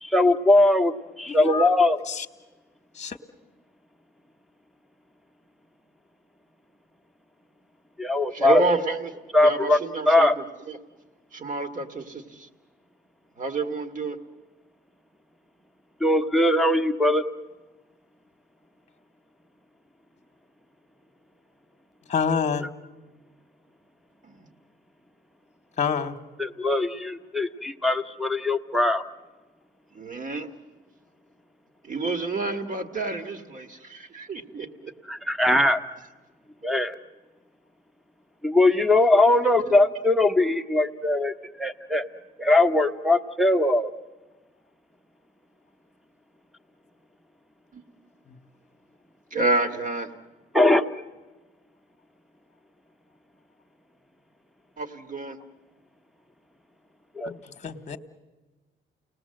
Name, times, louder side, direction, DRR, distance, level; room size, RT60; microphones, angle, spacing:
voice 1, 0.0-2.0 8.0-8.6 9.3-9.8 10.0-10.3 16.0-17.2 26.4-29.0 35.1-35.8 36.6-36.9 38.4-42.0 42.4-43.9 50.5-50.8 57.1-57.3, left 2 dB, ahead, 9 dB, 1.1 m, -21 dB
voice 2, 1.3-1.7 2.1-2.2 3.0-3.2 22.1-22.7 25.8-26.1 57.3-57.4 57.6-58.0, left 6 dB, 35° left, 8 dB, 1.2 m, -27 dB
voice 3, 8.3-9.1 9.4-10.8 11.3-12.5 13.4-14.2 24.2-24.4 29.9-30.5 31.8-34.9 39.1-39.6 47.7-47.8 49.3-50.1 54.8-55.4, right 3 dB, 40° right, 8 dB, 1.9 m, -29 dB
29.5 x 19.0 x 7.8 m, 1.2 s
cardioid pair, 90°, 20 cm